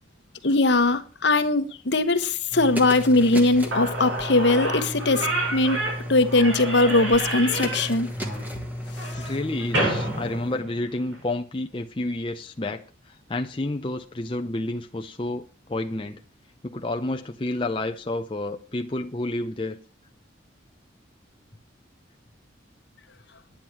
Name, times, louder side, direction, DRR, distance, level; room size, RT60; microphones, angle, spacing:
voice 1, 0.4-5.8 6.1-8.1, left 2 dB, 65° left, 1.1 m, -20 dB
sound 1, 2.5-10.6, left 1 dB, 10° right, 1.5 m, -34 dB
Slam / Squeak, 3.4-3.5 3.7-11.2, right 1 dB, 75° right, 5.9 m, -30 dB
voice 2, 9.2-16.2 16.6-19.8, left 2 dB, 25° left, 0.6 m, -30 dB
10.5 x 9.3 x 5.8 m
head